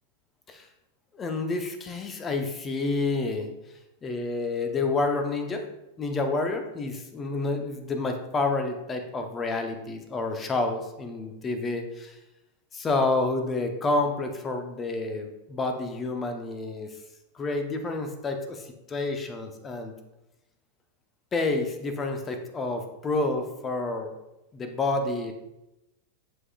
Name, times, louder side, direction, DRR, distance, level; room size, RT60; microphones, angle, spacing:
voice 1, 1.1-3.5 4.0-5.6 6.0-12.2 12.7-17.0 17.3-19.9 21.3-24.1 24.5-25.3, left 3 dB, 20° left, 6 dB, 0.8 m, -29 dB
10.5 x 3.8 x 2.4 m, 0.95 s
figure-of-eight pair, 90°, 0 cm